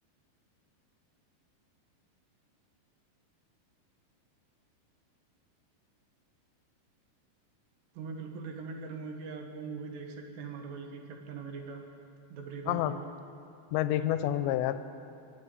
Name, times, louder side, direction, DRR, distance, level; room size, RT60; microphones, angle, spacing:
voice 1, 8.0-11.8 12.3-13.0, right 5 dB, 75° right, 3 dB, 3.4 m, -41 dB
voice 2, 12.7-13.0 13.7-14.8, left 13 dB, 90° left, 12 dB, 2.8 m, -28 dB
22.0 x 7.8 x 8.2 m, 2.5 s
omnidirectional pair, 5.0 m